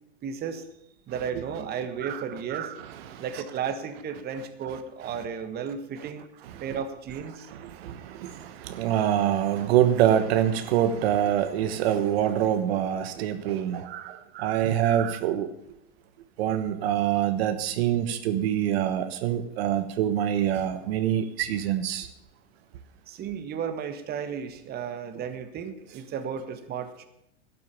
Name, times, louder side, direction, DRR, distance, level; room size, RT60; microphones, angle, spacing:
voice 1, 0.2-0.6 1.1-2.7 3.2-6.2 6.6-7.5 23.1-27.1, right 7 dB, 30° right, 9 dB, 1.6 m, -34 dB
voice 2, 2.5-3.4 6.4-6.6 7.5-15.5 16.4-22.1, right 10 dB, 70° right, 10 dB, 1.3 m, -25 dB
12.5 x 8.6 x 8.4 m, 0.82 s
supercardioid pair, 130°, 32 cm